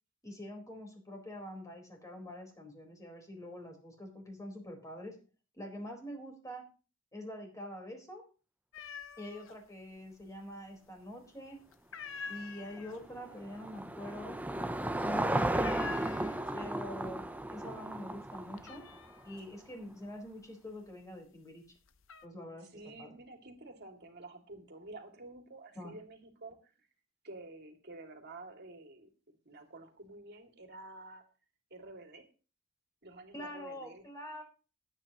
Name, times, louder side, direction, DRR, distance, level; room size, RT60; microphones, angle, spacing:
voice 1, 0.2-5.2 5.6-6.6 7.1-8.2 9.2-11.6 12.3-14.4 15.0-15.9 16.5-17.2 17.5-18.9 19.2-21.6 22.2-23.1 25.8-25.9 33.3-34.4, left 1 dB, 15° left, 2 dB, 4.3 m, -45 dB
sound 1, 8.7-9.6 9.9-10.7 11.0-11.4 11.7-16.8 17.1-17.7 18.0-21.2 21.7-22.3, left 5 dB, 70° left, 0.9 m, -47 dB
Car passing by / Engine, 12.7-19.2, right 1 dB, 10° right, 0.7 m, -35 dB
voice 2, 22.7-26.9 27.2-31.2 31.7-32.3 33.0-34.0, right 2 dB, 55° right, 4 dB, 2.5 m, -50 dB
21.0 x 9.0 x 3.0 m, 0.35 s
head